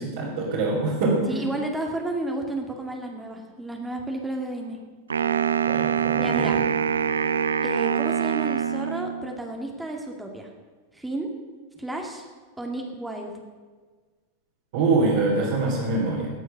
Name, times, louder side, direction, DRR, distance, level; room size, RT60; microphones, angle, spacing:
voice 1, 0.0-1.4 5.6-6.6 14.7-16.3, right 3 dB, 55° right, -6 dB, 3.4 m, -24 dB
voice 2, 1.3-4.8 6.2-6.6 7.6-10.5 10.9-11.3 11.8-12.2 12.6-13.3, right 2 dB, 5° right, 1 dB, 2.1 m, -32 dB
Wind instrument woodwind instrument, 5.1-9.3, right 7 dB, 70° right, 0.6 m, -24 dB
18.5 x 8.0 x 6.7 m, 1.4 s
figure-of-eight pair, 90°, 0 cm